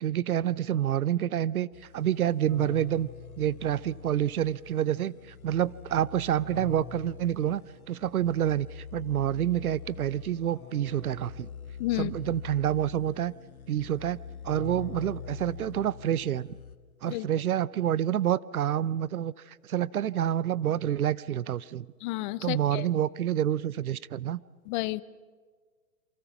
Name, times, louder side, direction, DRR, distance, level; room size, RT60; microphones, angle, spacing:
voice 1, 0.0-1.7 1.9-3.1 3.4-7.6 7.9-11.5 12.0-13.3 13.7-14.2 14.4-16.6 17.0-21.9 22.4-24.4, right 11 dB, 75° right, 20 dB, 0.8 m, -28 dB
sound 1, 1.7-16.8, left 7 dB, 75° left, 1.6 m, -45 dB
sound 2, 2.5-4.5 6.5-8.3 10.5-12.3 14.5-16.7, left 5 dB, 5° right, 6.1 m, -47 dB
voice 2, 11.8-12.1 17.1-17.3 22.0-22.9 24.7-25.0, left 19 dB, 35° left, 18 dB, 0.8 m, -31 dB
28.0 x 24.5 x 6.0 m, 1.5 s
hypercardioid pair, 120°, 44 cm